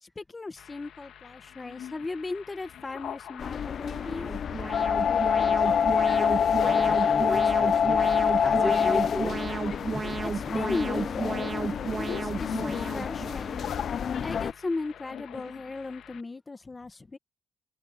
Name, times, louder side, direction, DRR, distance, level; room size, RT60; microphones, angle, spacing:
voice 1, 0.0-4.3 10.2-13.8 14.2-17.2, left 3 dB, 25° left, 1.5 m, -36 dB
sound 1, 0.6-16.2, left 10 dB, 90° left, 1.6 m, -45 dB
sound 2, 3.4-14.5, left 7 dB, 55° left, 0.3 m, -26 dB
Alarm, 3.9-13.8, right 5 dB, 35° right, 0.3 m, -34 dB
voice 2, 6.6-8.1 8.4-9.5 9.9-10.2 12.7-12.8 14.3-14.4, left 1 dB, 5° left, 1.4 m, -35 dB
cardioid pair, 120°, 0 cm